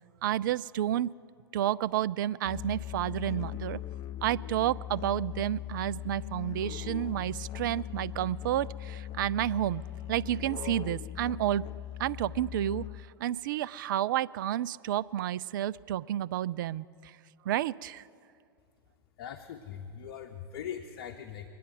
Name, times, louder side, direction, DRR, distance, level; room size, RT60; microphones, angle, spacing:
voice 1, 0.2-1.1 1.5-3.8 4.2-9.8 10.1-11.6 12.0-12.9 13.2-17.1 17.5-18.0, right 12 dB, 55° right, 18 dB, 0.4 m, -30 dB
Musical instrument, 2.4-13.2, left 12 dB, 35° left, 0.3 m, -40 dB
voice 2, 19.2-21.5, left 8 dB, 50° left, 5 dB, 0.9 m, -41 dB
23.0 x 9.3 x 6.7 m, 2.4 s
figure-of-eight pair, 90°, 13 cm